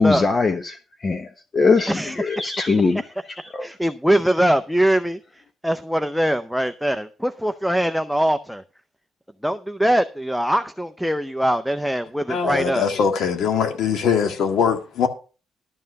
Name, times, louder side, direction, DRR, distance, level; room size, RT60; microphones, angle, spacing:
voice 1, 0.0-3.7 4.4-4.5, left 4 dB, 35° left, 1.2 m, -22 dB
voice 2, 1.9-2.9 3.4-8.6 9.4-12.9, right 1 dB, ahead, 0.6 m, -22 dB
voice 3, 12.3-15.1, left 6 dB, 75° left, 1.9 m, -21 dB
12.0 x 5.5 x 6.5 m
cardioid pair, 90°, 0 cm